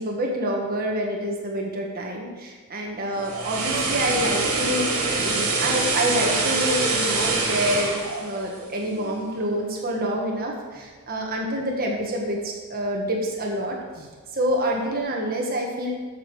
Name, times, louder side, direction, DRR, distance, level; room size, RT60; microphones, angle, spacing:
voice 1, 0.0-15.9, right 1 dB, 45° right, 0 dB, 1.4 m, -27 dB
sound 1, 3.0-9.2 9.6-9.8, right 3 dB, 75° right, 2.2 m, -25 dB
12.0 x 7.1 x 4.8 m, 1.4 s
head